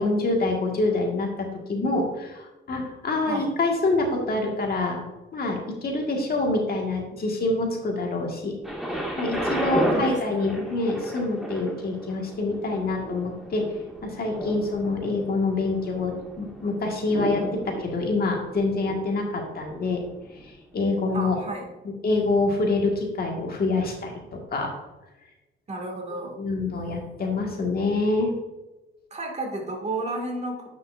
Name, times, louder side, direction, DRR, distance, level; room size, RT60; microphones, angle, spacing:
voice 1, 0.0-5.0 5.3-8.5 9.2-13.6 14.0-20.0 20.3-21.3 21.8-24.7 26.3-28.3, left 2 dB, 50° left, 1 dB, 1.8 m, -26 dB
Thunder, 8.6-20.5 21.2-21.3, right 1 dB, ahead, 2.0 m, -33 dB
voice 2, 9.9-10.5 21.1-21.7 25.7-26.4 29.1-30.6, right 2 dB, 35° right, 1 dB, 2.2 m, -32 dB
10.0 x 5.8 x 2.6 m, 1.1 s
cardioid pair, 90°, 20 cm